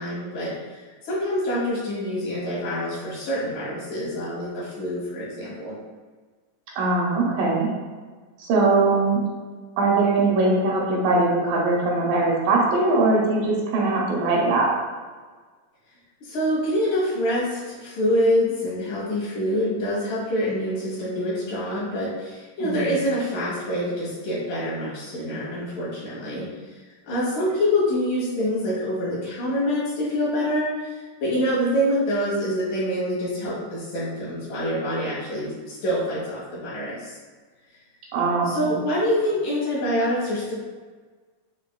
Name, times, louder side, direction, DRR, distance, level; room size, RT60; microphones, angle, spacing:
voice 1, 0.0-5.8 16.2-26.8 27.1-37.2 38.4-40.5, equal, 70° left, -7 dB, 2.7 m, -26 dB
voice 2, 6.8-7.7 8.4-9.2 9.8-14.7 22.6-23.0 38.1-38.8, right 3 dB, 80° right, -3 dB, 2.2 m, -21 dB
6.2 x 2.5 x 2.2 m, 1.4 s
omnidirectional pair, 4.0 m